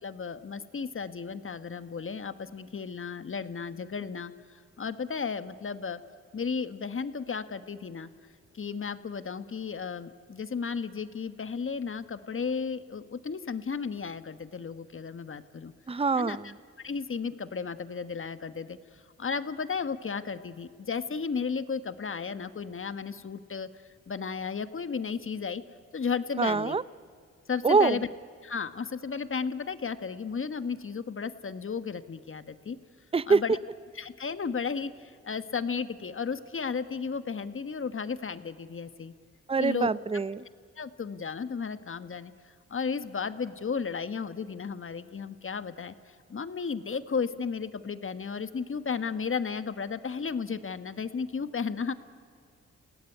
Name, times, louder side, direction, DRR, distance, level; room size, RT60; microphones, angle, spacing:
voice 1, 0.0-6.0 6.3-8.1 8.5-15.7 16.1-23.7 24.1-25.6 25.9-26.8 27.5-28.1 28.4-32.8 33.3-33.6 33.9-39.1 39.6-39.9 40.8-42.3 42.7-51.9, left 5 dB, 45° left, 12 dB, 1.4 m, -34 dB
voice 2, 15.9-16.5 26.4-26.8 27.6-28.0 33.1-33.4 39.5-40.4, right 4 dB, 20° right, 18 dB, 0.6 m, -24 dB
30.0 x 17.5 x 9.9 m, 2.2 s
cardioid pair, 65°, 29 cm